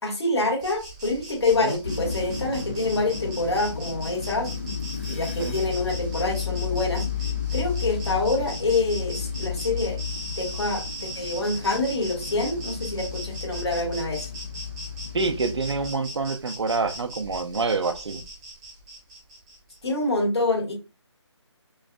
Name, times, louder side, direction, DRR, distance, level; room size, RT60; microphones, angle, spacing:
voice 1, 0.0-4.5 5.1-7.1 7.5-10.0 10.4-14.3 19.8-20.7, left 2 dB, 60° left, 0 dB, 1.9 m, -26 dB
Insect, 0.6-19.8, right 1 dB, 10° right, 0.8 m, -40 dB
voice 2, 1.5-1.8 5.4-5.6 15.1-18.2, right 4 dB, 65° right, 9 dB, 0.6 m, -27 dB
sound 1, 1.8-15.9, left 6 dB, 25° left, 0.4 m, -33 dB
5.2 x 2.5 x 2.2 m, 0.30 s
figure-of-eight pair, 170°, 15 cm